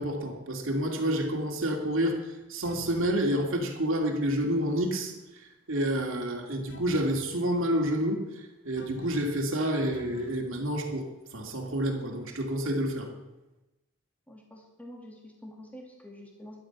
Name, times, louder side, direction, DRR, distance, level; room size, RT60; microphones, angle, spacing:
voice 1, 0.0-5.1 5.7-11.0 11.3-13.1, right 1 dB, 60° right, 1 dB, 2.6 m, -29 dB
sound 1, 2.6-3.2 6.7-7.2 8.8-9.4 9.9-10.4, left 1 dB, 55° left, 1.5 m, -47 dB
voice 2, 14.3-16.6, equal, 5° left, 0 dB, 2.2 m, -47 dB
12.0 x 11.5 x 6.1 m, 1.0 s
head